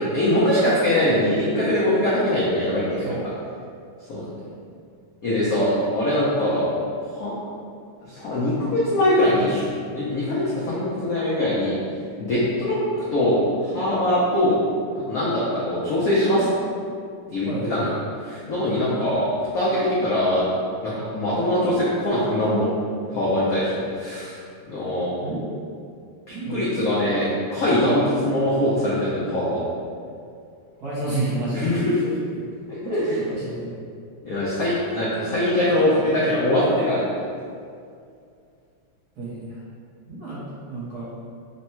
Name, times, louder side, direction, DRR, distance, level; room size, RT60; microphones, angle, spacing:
voice 1, 0.0-3.1 4.1-4.2 5.2-6.7 7.1-7.3 8.0-9.7 9.9-11.8 12.2-12.8 13.1-13.4 13.6-14.6 15.1-16.5 17.3-17.9 18.2-19.3 19.5-20.5 20.8-22.7 23.1-24.4 24.7-25.1 26.3-29.6 31.5-32.1 32.7-33.2 34.2-37.1, left 1 dB, 90° left, -8 dB, 0.7 m, -22 dB
voice 2, 17.5-17.9 18.8-19.0 25.2-25.5 26.3-26.6 30.8-31.7 32.8-33.8 39.2-39.4 40.1-40.4 40.7-41.1, right 2 dB, 55° right, -9 dB, 1.3 m, -30 dB
3.5 x 2.2 x 4.2 m, 2.3 s
omnidirectional pair, 2.4 m